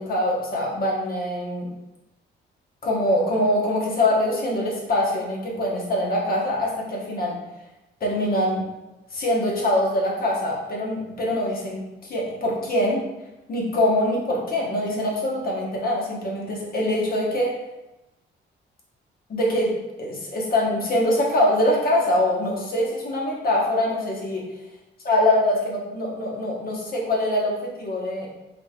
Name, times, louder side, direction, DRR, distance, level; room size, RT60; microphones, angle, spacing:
voice 1, 0.0-1.7 2.8-7.4 8.0-8.6 9.1-13.0 13.5-17.5 19.3-24.5 25.0-28.3, left 1 dB, 50° left, -2 dB, 1.2 m, -23 dB
3.9 x 3.2 x 2.4 m, 1.0 s
cardioid pair, 90°, 20 cm